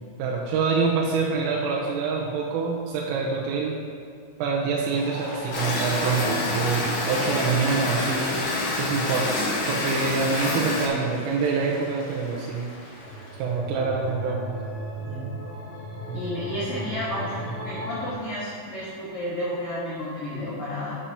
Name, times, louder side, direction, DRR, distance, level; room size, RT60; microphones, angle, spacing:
voice 1, 0.2-3.8 4.4-8.4 8.8-9.3 9.7-12.7 13.4-14.6 16.1-16.2, right 4 dB, 85° right, -3 dB, 3.3 m, -26 dB
Applause, 4.8-13.5, left 1 dB, 45° left, 2.8 m, -38 dB
sound 1, 5.5-10.9, left 2 dB, 65° left, 2.7 m, -27 dB
sound 2, 13.0-18.1, equal, 60° right, 2.8 m, -35 dB
voice 2, 15.0-15.3 16.1-21.0, equal, 85° left, -8 dB, 1.6 m, -32 dB
11.0 x 8.9 x 2.9 m, 2.4 s
omnidirectional pair, 6.0 m